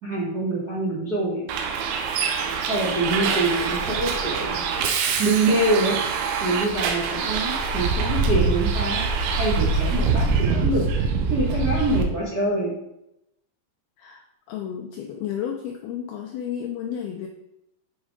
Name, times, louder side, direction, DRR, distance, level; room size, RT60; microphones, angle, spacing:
voice 1, 0.0-1.4 2.6-4.6 5.2-6.0 6.4-9.0 9.4-10.8 11.3-12.7, right 2 dB, 45° right, -7 dB, 1.2 m, -25 dB
Bus, 1.5-12.0, right 5 dB, 80° right, 3.2 m, -24 dB
voice 2, 14.5-17.3, left 9 dB, 85° left, 1 dB, 2.2 m, -32 dB
8.5 x 4.9 x 5.2 m, 0.86 s
omnidirectional pair, 5.3 m